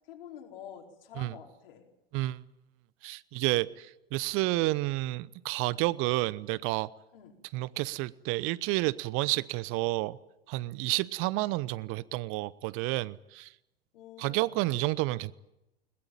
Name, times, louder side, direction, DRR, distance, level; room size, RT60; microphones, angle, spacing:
voice 1, 0.1-1.8 7.1-7.4 13.9-14.7, left 9 dB, 65° left, 4.9 m, -48 dB
voice 2, 3.0-6.9 7.5-10.2 10.5-13.5 14.2-15.3, right 19 dB, 45° right, 0.9 m, -30 dB
21.5 x 20.5 x 9.1 m
figure-of-eight pair, 80°, 30 cm